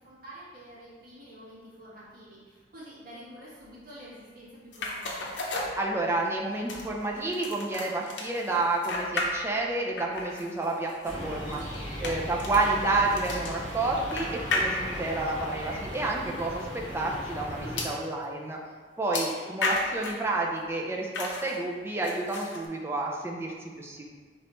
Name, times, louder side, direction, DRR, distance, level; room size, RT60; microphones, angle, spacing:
voice 1, 0.0-5.3 19.0-19.6, equal, 50° right, -8 dB, 1.4 m, -47 dB
sound 1, 4.7-6.3 6.7-9.7 10.0-15.2 15.9-16.0 16.4-16.5 17.8-18.0 19.1-20.3 21.1-21.6 22.0-22.7, left 2 dB, 80° left, 0.6 m, -34 dB
voice 2, 5.8-11.6 12.0-18.6 19.0-24.1, right 2 dB, 15° right, -2 dB, 0.4 m, -30 dB
sound 2, 11.0-17.9, equal, 30° left, 1.4 m, -37 dB
4.5 x 3.0 x 3.0 m, 1.5 s
head